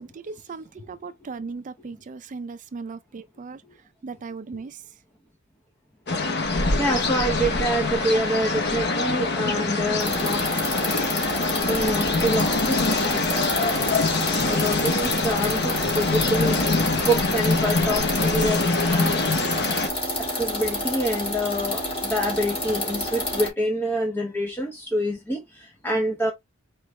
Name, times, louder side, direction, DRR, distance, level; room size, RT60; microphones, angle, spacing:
voice 1, 0.0-3.6 4.0-4.8, right 4 dB, 40° right, 0.4 m, -37 dB
sound 1, 6.1-19.9, left 3 dB, 55° left, 0.8 m, -24 dB
voice 2, 6.8-10.5 11.5-14.0 14.4-16.6 17.0-19.2 20.2-26.3, right 1 dB, 10° left, 0.7 m, -27 dB
sound 2, 10.0-23.5, left 1 dB, 30° left, 2.0 m, -29 dB
4.6 x 3.2 x 3.0 m
head